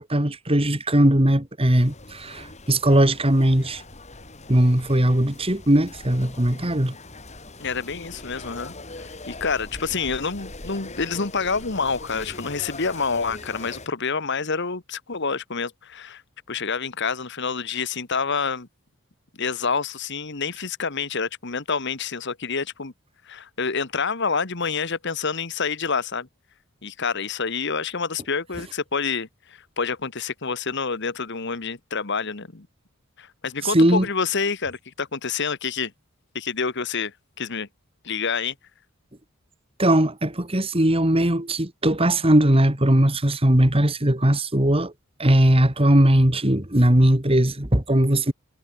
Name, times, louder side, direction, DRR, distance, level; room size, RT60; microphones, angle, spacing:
voice 1, 0.0-3.8 4.5-6.9 33.6-34.1 39.8-44.9 45.2-48.3, right 1 dB, 25° right, 2.5 m, -19 dB
sound 1, 1.8-13.9, left 2 dB, 30° left, 4.9 m, -41 dB
voice 2, 7.6-8.7 9.3-16.2 16.5-18.7 19.4-22.9 23.2-26.3 26.8-32.7 33.2-35.9 36.3-37.7 38.0-38.5, left 5 dB, 55° left, 1.5 m, -27 dB
head